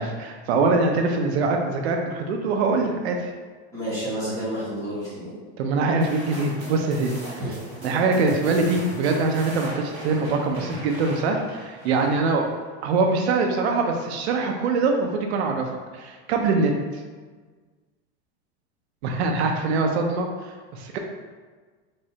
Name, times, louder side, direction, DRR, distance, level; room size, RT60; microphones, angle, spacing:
voice 1, 0.0-3.3 5.6-7.4 7.8-12.5 12.8-16.7 19.0-21.0, right 3 dB, 80° right, 3 dB, 0.6 m, -23 dB
voice 2, 3.7-5.3 7.4-7.5, right 1 dB, 10° left, -12 dB, 1.4 m, -30 dB
sound 1, 6.0-12.5, equal, 20° right, 1.4 m, -38 dB
3.6 x 3.1 x 2.8 m, 1.4 s
supercardioid pair, 170°, 32 cm